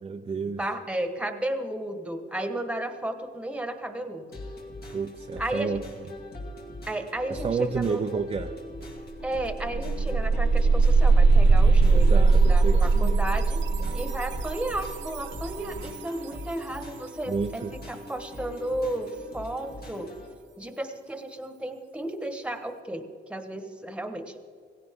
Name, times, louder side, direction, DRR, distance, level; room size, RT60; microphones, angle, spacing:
voice 1, 0.0-0.6 4.9-5.8 7.3-8.5 11.9-13.2 13.8-14.0 17.3-17.7, right 5 dB, 30° right, 5 dB, 0.6 m, -31 dB
voice 2, 0.6-4.3 5.4-5.8 6.9-8.0 9.2-13.6 13.9-20.1 20.6-24.4, right 1 dB, 5° right, 7 dB, 1.4 m, -33 dB
sound 1, 4.3-20.3, left 1 dB, 55° left, 2.7 m, -42 dB
sound 2, 8.8-8.9 9.2-16.0, right 3 dB, 85° right, 1.2 m, -21 dB
17.0 x 16.5 x 3.7 m, 2.1 s
cardioid pair, 120°, 19 cm